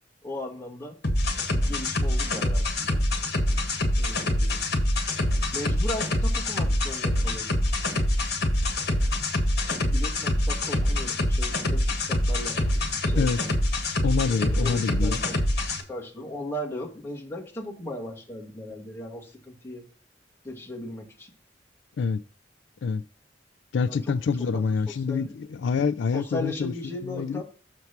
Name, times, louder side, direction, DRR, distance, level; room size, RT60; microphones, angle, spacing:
voice 1, 0.2-1.0 1.5-3.0 3.9-4.6 5.5-7.6 9.6-12.6 13.0-13.6 14.3-15.4 15.9-19.8 20.4-21.3 23.9-24.2 24.5-25.4 26.1-27.4, left 1 dB, 15° left, 2.0 m, -37 dB
sound 1, 1.0-15.8, left 1 dB, 60° left, 1.6 m, -25 dB
voice 2, 14.0-15.2 22.0-22.2 22.8-23.0 23.7-26.7 27.0-27.4, left 5 dB, 75° left, 0.4 m, -26 dB
6.8 x 4.6 x 5.8 m
head